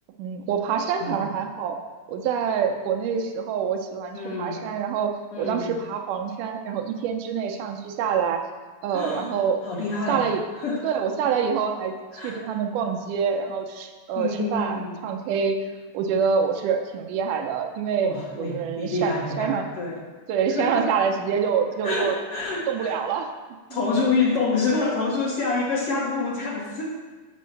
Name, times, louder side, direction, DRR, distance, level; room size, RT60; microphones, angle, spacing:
voice 1, 0.2-1.8 2.1-8.4 8.8-9.6 10.1-10.4 10.8-15.6 15.9-19.7 20.3-22.2 22.7-23.3 23.7-23.8, right 7 dB, 80° right, 4 dB, 2.2 m, -26 dB
voice 2, 4.1-4.6 5.3-5.7 8.9-9.3 9.6-10.2 10.6-10.8 12.1-12.4 14.2-14.9 18.0-20.0 20.6-20.9 21.8-23.0 23.7-26.9, left 3 dB, 60° left, -3 dB, 1.7 m, -27 dB
7.6 x 5.4 x 6.4 m, 1.4 s
omnidirectional pair, 3.7 m